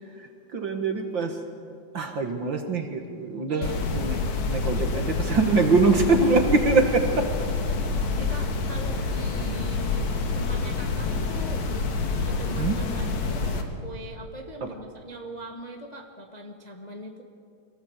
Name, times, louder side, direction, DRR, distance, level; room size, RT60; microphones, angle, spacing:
voice 1, 0.2-1.4 1.9-4.2 4.5-7.3 12.6-12.8 14.6-14.7, right 3 dB, 45° right, 4 dB, 1.8 m, -23 dB
voice 2, 3.5-3.8 5.5-5.8 8.2-10.1 10.3-11.6 12.2-17.2, right 1 dB, 25° left, 1 dB, 1.0 m, -41 dB
sound 1, 3.6-13.6, left 3 dB, 70° left, 3.0 m, -27 dB
25.5 x 17.5 x 8.1 m, 2.3 s
omnidirectional pair, 3.4 m